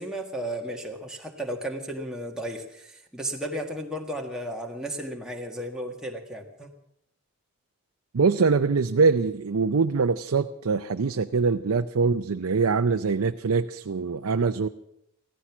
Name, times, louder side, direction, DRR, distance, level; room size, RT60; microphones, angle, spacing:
voice 1, 0.0-6.7, right 1 dB, 5° right, 0 dB, 1.7 m, -34 dB
voice 2, 8.1-14.7, right 4 dB, 80° right, 7 dB, 0.6 m, -23 dB
15.5 x 14.5 x 6.1 m, 0.76 s
head